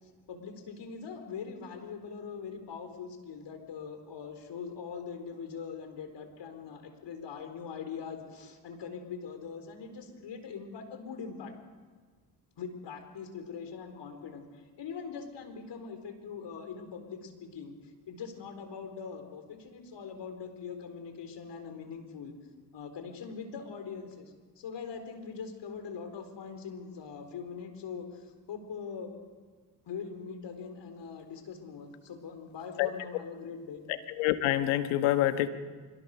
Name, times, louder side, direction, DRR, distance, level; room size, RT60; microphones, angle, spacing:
voice 1, 0.3-11.5 12.6-17.7 18.1-22.3 22.7-29.1 29.9-33.8, left 6 dB, 65° left, 7 dB, 4.2 m, -42 dB
voice 2, 33.9-35.5, left 13 dB, 85° left, 9 dB, 1.4 m, -27 dB
25.5 x 23.0 x 6.7 m, 1.4 s
supercardioid pair, 55°, 46 cm